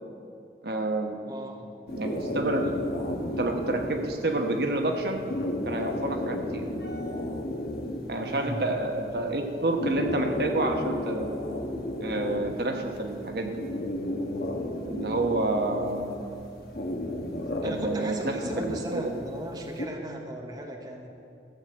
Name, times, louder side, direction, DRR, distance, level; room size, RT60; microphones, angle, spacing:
voice 1, 0.6-1.2 1.9-2.6 3.4-5.2 5.6-6.7 8.1-11.3 12.0-13.6 14.9-16.2 17.6-19.1, right 2 dB, 65° right, 3 dB, 1.1 m, -29 dB
voice 2, 1.2-1.7 2.6-2.8 8.2-8.6 17.6-21.1, right 1 dB, 25° right, 1 dB, 0.9 m, -37 dB
sound 1, 1.9-19.9, left 1 dB, 55° left, 1.2 m, -34 dB
14.5 x 6.7 x 7.7 m, 2.6 s
head